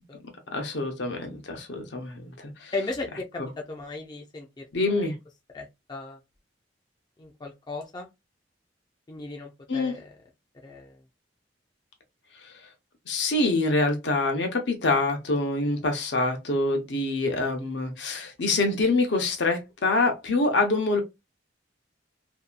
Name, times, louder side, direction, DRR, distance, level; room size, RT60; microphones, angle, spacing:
voice 1, 0.5-2.7 3.4-3.5 4.7-5.2 9.7-9.9 12.4-12.5 13.1-21.0, left 2 dB, 70° left, 0.7 m, -25 dB
voice 2, 2.7-4.6 5.0-5.1 5.5-6.2 7.2-8.1 9.1-10.0 10.6-11.0, left 3 dB, 25° left, 0.4 m, -36 dB
2.7 x 2.2 x 2.4 m
head